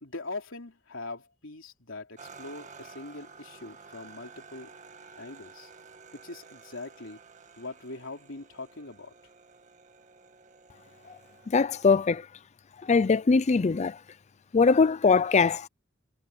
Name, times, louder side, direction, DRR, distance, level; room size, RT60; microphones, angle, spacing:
voice 1, 0.0-4.7 5.2-5.7 6.1-7.2 7.6-9.1, left 2 dB, 80° left, 3.4 m, -42 dB
sound 1, 2.2-12.2, right 5 dB, 40° right, 1.9 m, -51 dB
voice 2, 11.5-12.3 12.8-14.0 14.5-15.7, left 4 dB, 35° left, 0.4 m, -22 dB
head